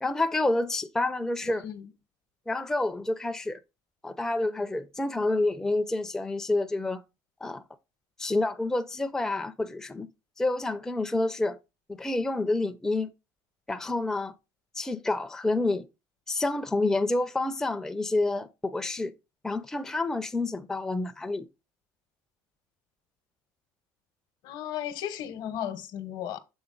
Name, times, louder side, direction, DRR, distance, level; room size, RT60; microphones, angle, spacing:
voice 1, 0.0-1.7 2.5-3.6 4.0-7.0 7.4-7.6 8.2-10.1 10.4-11.6 11.9-13.1 13.7-14.3 14.7-15.9 16.3-19.1 19.4-21.5, left 2 dB, 5° left, 0.4 m, -28 dB
voice 2, 24.4-26.4, left 10 dB, 65° left, 0.9 m, -35 dB
7.1 x 3.6 x 3.7 m
supercardioid pair, 105°, 8 cm